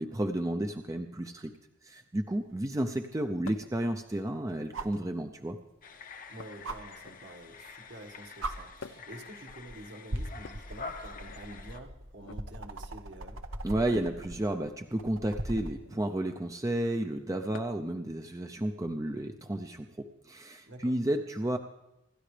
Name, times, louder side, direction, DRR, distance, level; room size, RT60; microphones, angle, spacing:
voice 1, 0.0-1.5 1.8-5.6 13.6-21.6, right 1 dB, 15° right, 6 dB, 0.6 m, -32 dB
sound 1, 2.5-2.6 4.7-5.0 6.6-6.8 7.9-8.0 8.4-8.5 9.5-9.7 10.1-15.8 17.4-17.5, right 1 dB, 85° right, 1.1 m, -39 dB
sound 2, 3.4-3.8 4.8-5.3 6.4-7.5 8.8-9.2 10.3-11.4 12.1-12.4 13.9-14.2 15.8-16.2 17.5-17.9 19.4-19.5 20.7-20.8, left 4 dB, 80° left, 0.7 m, -49 dB
sound 3, 5.8-11.8, left 4 dB, 40° left, 0.8 m, -47 dB
voice 2, 6.3-13.4 20.6-20.9, right 1 dB, 60° right, 3 dB, 1.7 m, -48 dB
26.5 x 12.5 x 3.3 m, 0.92 s
head